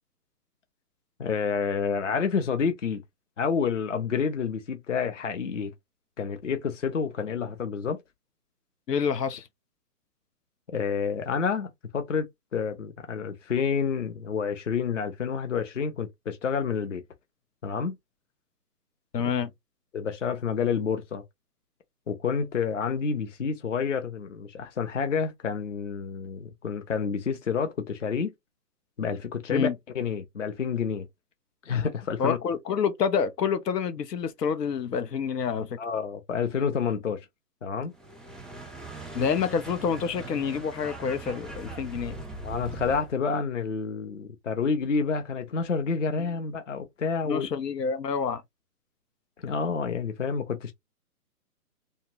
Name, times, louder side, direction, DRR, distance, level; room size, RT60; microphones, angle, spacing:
voice 1, 1.2-3.0 3.4-5.7 6.2-8.0 10.7-17.0 17.6-18.0 19.9-21.2 22.1-28.3 29.0-29.7 29.9-31.1 31.7-32.4 35.8-37.3 37.6-37.9 42.4-47.5 49.4-50.7, left 6 dB, 50° left, 0.6 m, -29 dB
voice 2, 8.9-9.5 19.1-19.5 29.5-29.7 32.2-35.8 39.1-42.2 47.2-48.4, left 6 dB, 90° left, 0.8 m, -28 dB
sound 1, 37.9-43.1, right 2 dB, ahead, 0.3 m, -40 dB
2.7 x 2.2 x 2.8 m
hypercardioid pair, 180°, 47 cm